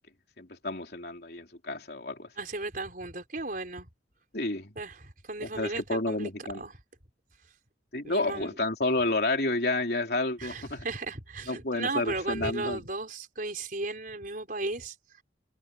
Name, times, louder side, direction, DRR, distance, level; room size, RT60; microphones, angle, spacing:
voice 1, 0.4-2.3 4.3-4.7 5.4-6.6 7.9-10.9 11.5-12.8, left 2 dB, 60° left, 3.5 m, -30 dB
voice 2, 2.4-3.9 4.8-6.3 6.6-6.7 8.0-8.6 10.4-15.0, right 2 dB, 50° right, 5.3 m, -35 dB
head